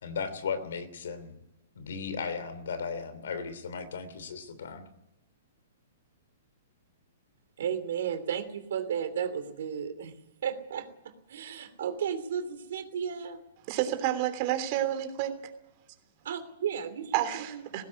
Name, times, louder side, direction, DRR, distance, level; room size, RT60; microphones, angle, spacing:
voice 1, 0.0-1.3 1.7-4.8, left 5 dB, 75° left, 12 dB, 3.0 m, -36 dB
voice 2, 7.6-10.1 10.4-10.9 11.3-13.4 16.2-17.6, right 8 dB, 70° right, 9 dB, 3.0 m, -33 dB
voice 3, 13.7-15.4 17.1-17.8, right 12 dB, 45° right, 8 dB, 3.2 m, -29 dB
17.5 x 16.5 x 9.7 m, 0.91 s
hypercardioid pair, 135°, 0 cm